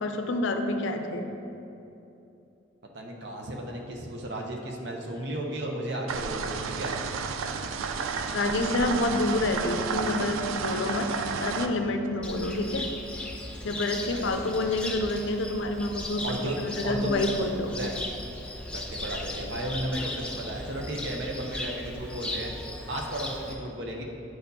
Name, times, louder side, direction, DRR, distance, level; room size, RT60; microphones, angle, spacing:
voice 1, 0.0-1.3 8.3-12.9 13.6-16.2 16.6-17.7, left 2 dB, 70° left, 6 dB, 0.5 m, -28 dB
voice 2, 2.9-7.0 13.7-14.5 16.2-17.2 17.7-18.0 18.7-22.5 22.9-24.0, right 1 dB, 55° right, 0 dB, 0.7 m, -34 dB
sound 1, 6.1-11.7, right 5 dB, 85° right, 0.3 m, -32 dB
Cricket, 12.2-23.5, left 1 dB, 5° left, 0.3 m, -37 dB
9.2 x 4.3 x 2.7 m, 2.8 s
head